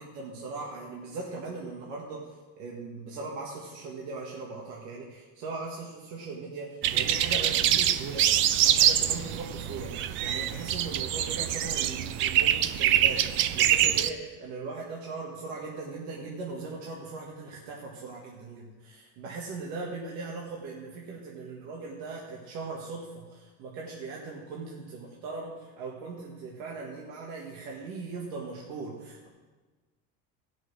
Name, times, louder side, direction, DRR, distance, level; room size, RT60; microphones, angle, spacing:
voice 1, 0.1-8.3 8.6-29.3, right 3 dB, 65° right, -3 dB, 1.8 m, -39 dB
sound 1, 6.8-14.1, right 11 dB, 40° right, 0.4 m, -25 dB
15.5 x 6.2 x 6.1 m, 1.3 s
cardioid pair, 170°, 31 cm